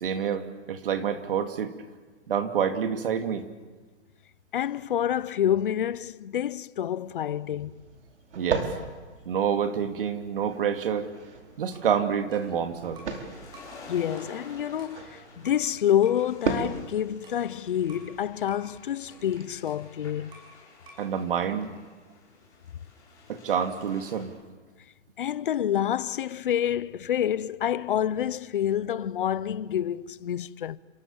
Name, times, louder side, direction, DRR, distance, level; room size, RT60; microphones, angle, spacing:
voice 1, 0.0-1.7 2.3-3.5 8.4-8.7 9.3-11.1 11.6-13.0 21.0-21.7 23.3-24.3, right 7 dB, 50° right, 2.5 m, -27 dB
voice 2, 4.5-7.8 13.9-20.4 25.2-30.8, left 10 dB, 50° left, 0.8 m, -28 dB
sound 1, 7.0-19.4, right 5 dB, 75° right, 4.8 m, -38 dB
sound 2, 10.0-24.2, left 3 dB, 10° left, 7.1 m, -52 dB
sound 3, 11.7-13.2 13.5-13.8 14.2-15.7 16.0-16.3 16.6-18.1 18.5-18.7 19.1-20.6 20.9-21.1, right 1 dB, 15° right, 5.7 m, -53 dB
29.0 x 26.5 x 7.2 m
hypercardioid pair, 170°, 35 cm